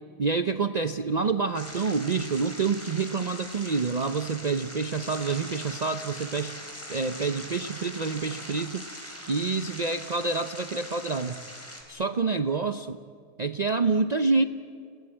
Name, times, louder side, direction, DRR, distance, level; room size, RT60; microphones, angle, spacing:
voice 1, 0.2-6.5 6.9-11.4 11.9-13.0 13.4-14.4, right 4 dB, 85° right, 9 dB, 0.3 m, -27 dB
sound 1, 1.5-11.8, equal, 10° left, 4.0 m, -41 dB
30.0 x 18.5 x 8.7 m, 2.3 s
omnidirectional pair, 1.7 m